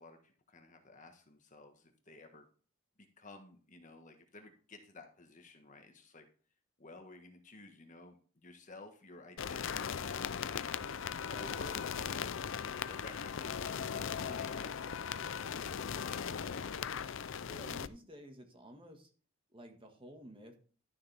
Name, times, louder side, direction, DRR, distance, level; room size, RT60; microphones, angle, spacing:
voice 1, 0.0-2.5 3.2-6.3 6.8-10.6 11.3-12.3 12.9-17.0, left 2 dB, 35° left, 5 dB, 1.4 m, -54 dB
sound 1, 9.4-17.9, left 7 dB, 60° left, 0.5 m, -38 dB
voice 2, 17.4-19.1 19.5-20.6, equal, 25° right, 4 dB, 1.6 m, -52 dB
12.0 x 6.8 x 3.4 m, 0.41 s
head